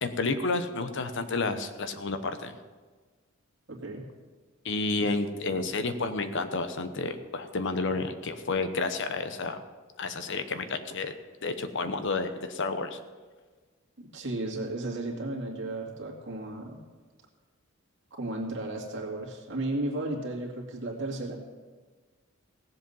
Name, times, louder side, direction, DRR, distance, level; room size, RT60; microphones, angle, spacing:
voice 1, 0.0-2.5 4.6-9.6 10.0-11.2 11.4-13.0, left 3 dB, 60° left, 9 dB, 0.9 m, -30 dB
voice 2, 3.7-4.1 5.5-5.6 14.0-16.8 18.1-21.4, right 2 dB, 60° right, 0 dB, 2.3 m, -34 dB
17.0 x 7.6 x 5.5 m, 1.4 s
head